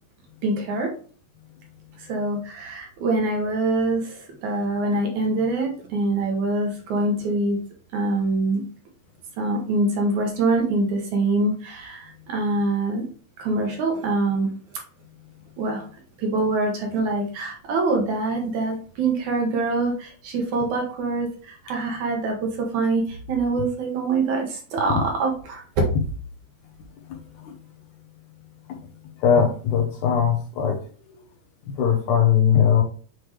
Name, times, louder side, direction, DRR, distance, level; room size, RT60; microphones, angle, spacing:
voice 1, 0.4-0.9 2.0-7.6 7.9-8.6 9.4-13.1 13.4-14.5 15.6-15.8 16.2-25.8, right 2 dB, 65° right, 1 dB, 2.4 m, -24 dB
voice 2, 29.2-30.8 31.8-32.8, left 8 dB, 70° left, 1 dB, 2.0 m, -19 dB
7.5 x 4.9 x 3.2 m, 0.42 s
omnidirectional pair, 4.1 m